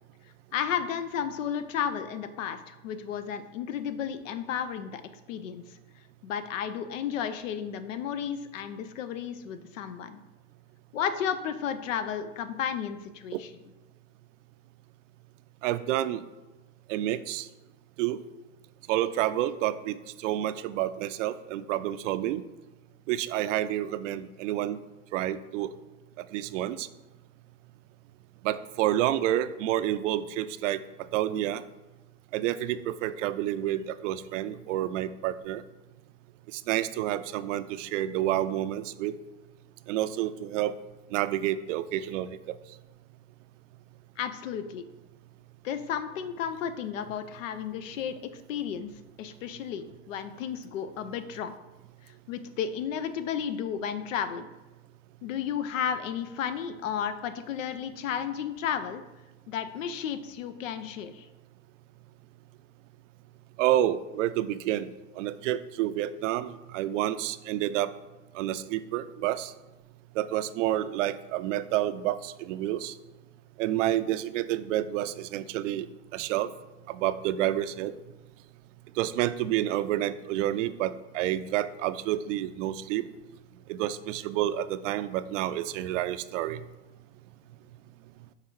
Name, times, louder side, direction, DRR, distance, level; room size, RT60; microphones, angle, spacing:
voice 1, 0.5-5.0 5.3-5.6 6.2-10.2 10.9-13.5 44.2-44.8 45.6-48.2 48.5-48.9 49.2-51.5 52.3-54.5 55.2-59.0 59.5-61.3, left 8 dB, 85° left, 11 dB, 0.7 m, -33 dB
voice 2, 15.6-16.2 16.9-17.5 18.0-18.2 18.9-22.4 23.1-24.8 25.1-25.7 26.3-26.9 28.4-30.8 31.1-31.6 32.3-35.6 36.5-39.1 39.9-40.7 41.1-42.4 63.6-67.9 68.3-69.5 70.2-72.9 73.6-75.9 76.1-76.5 76.9-77.9 79.0-83.1 83.7-86.6, right 13 dB, 75° right, 13 dB, 0.5 m, -29 dB
5.7 x 3.8 x 4.6 m, 1.1 s
supercardioid pair, 120°, 38 cm